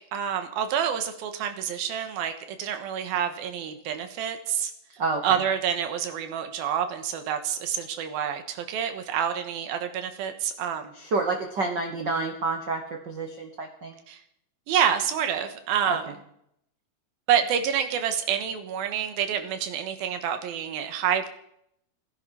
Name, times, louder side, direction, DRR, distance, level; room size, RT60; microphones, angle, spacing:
voice 1, 0.1-4.7 5.2-10.9 14.1-14.2 14.7-16.0 17.3-21.3, right 8 dB, 90° right, 8 dB, 3.2 m, -28 dB
voice 2, 5.0-5.4 10.9-13.9 15.8-16.0, right 3 dB, 65° right, 4 dB, 1.0 m, -29 dB
16.0 x 15.5 x 5.7 m, 0.75 s
omnidirectional pair, 4.2 m